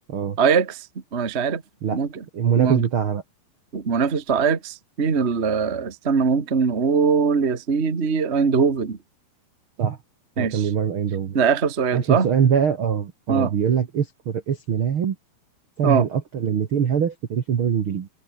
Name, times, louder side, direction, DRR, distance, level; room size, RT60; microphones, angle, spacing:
voice 1, 0.4-0.9 1.1-1.6 1.9-2.2 2.6-2.8 3.7-9.0 10.4-10.7 11.3-12.3 13.3-13.5 15.8-16.1, right 5 dB, 60° right, 0.6 m, -21 dB
voice 2, 2.3-3.2 9.8-10.0 10.4-11.4 11.9-15.1 15.8-18.1, right 8 dB, 85° right, 1.1 m, -23 dB
omnidirectional pair, 5.0 m